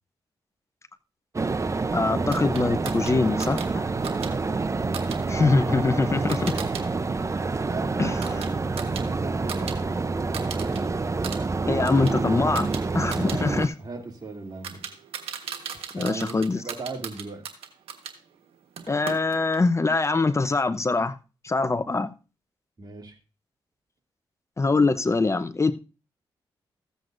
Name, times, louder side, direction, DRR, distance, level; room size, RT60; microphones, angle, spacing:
sound 1, 1.3-13.7, right 3 dB, 30° right, 0.7 m, -27 dB
voice 1, 1.9-3.9 5.3-6.5 8.0-8.4 11.7-12.7 12.9-13.7 15.9-16.6 18.9-21.2 21.4-22.1 24.6-25.7, left 3 dB, 30° left, 0.7 m, -23 dB
sound 2, 2.3-6.8 7.2-9.8 10.1-10.8 11.1-18.2 18.8-19.7, right 7 dB, 85° right, 1.4 m, -39 dB
voice 2, 4.0-4.3 7.6-8.5 8.8-10.0 13.0-13.3 13.8-14.8 15.9-17.4 22.8-23.2, right 3 dB, 45° right, 2.7 m, -38 dB
15.0 x 7.7 x 2.6 m
cardioid pair, 55°, 10 cm